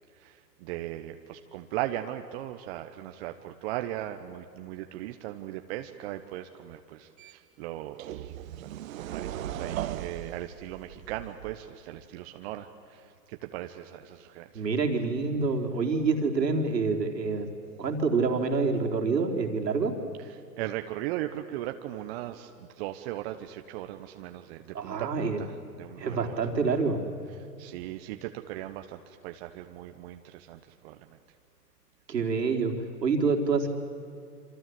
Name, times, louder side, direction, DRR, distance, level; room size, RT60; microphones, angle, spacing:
voice 1, 0.1-14.7 20.6-26.3 27.6-31.2, right 14 dB, 40° right, 6 dB, 1.3 m, -38 dB
sound 1, 7.2-7.3 8.0-11.8, right 12 dB, 55° right, 1.4 m, -38 dB
voice 2, 14.5-17.5 17.8-19.9 24.7-25.4 26.0-27.0 32.1-32.7 33.0-33.7, right 4 dB, 85° right, 3 dB, 4.0 m, -27 dB
27.5 x 26.5 x 7.9 m, 2.7 s
hypercardioid pair, 130°, 48 cm